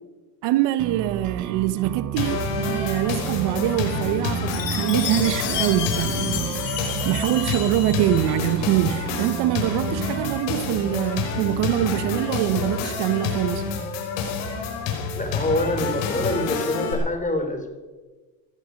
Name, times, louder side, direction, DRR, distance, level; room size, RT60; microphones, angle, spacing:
voice 1, 0.4-13.7, right 13 dB, 65° right, 1.1 m, -24 dB
sound 1, 0.8-10.4, right 10 dB, 40° right, 1.0 m, -32 dB
sound 2, 2.2-16.9, left 5 dB, 65° left, 5.7 m, -28 dB
Chime, 4.5-8.7, left 9 dB, 85° left, 5.2 m, -31 dB
voice 2, 15.2-17.7, left 1 dB, 15° left, 4.0 m, -25 dB
19.0 x 14.0 x 5.3 m
supercardioid pair, 100°, 46 cm